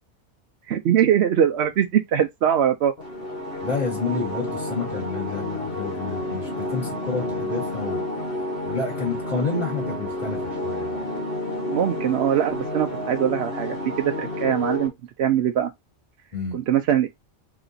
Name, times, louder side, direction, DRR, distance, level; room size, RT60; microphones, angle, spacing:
voice 1, 0.7-2.9 11.7-14.9 15.2-15.7 16.5-17.1, right 9 dB, 65° right, 0.8 m, -22 dB
sound 1, 3.0-14.9, left 1 dB, 50° left, 1.8 m, -30 dB
voice 2, 3.6-8.1 8.7-11.0 16.3-16.6, left 4 dB, 35° left, 2.3 m, -29 dB
4.1 x 3.0 x 3.8 m
omnidirectional pair, 1.2 m